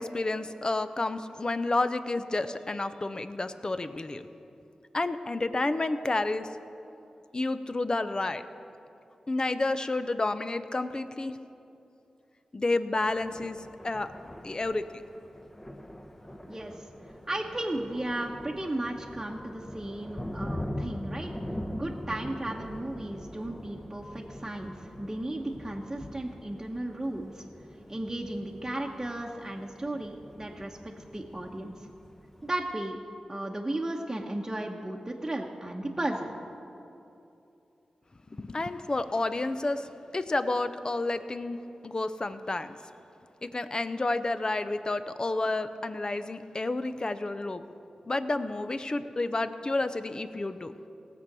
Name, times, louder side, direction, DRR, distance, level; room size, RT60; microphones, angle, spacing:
voice 1, 0.0-4.2 4.9-6.5 7.3-8.4 9.3-11.4 12.5-13.6 13.8-14.1 14.4-14.9 38.3-41.6 41.8-42.8 43.4-47.6 48.1-50.7, left 2 dB, 35° left, 11 dB, 0.7 m, -30 dB
Thunder, 13.0-32.7, left 1 dB, 15° left, 1.0 m, -42 dB
voice 2, 16.5-16.9 17.3-21.3 21.7-27.4 27.9-31.9 32.4-33.0 33.3-36.4, right 1 dB, 20° right, -1 dB, 1.1 m, -35 dB
17.5 x 7.0 x 6.1 m, 2.8 s
cardioid pair, 50°, 2 cm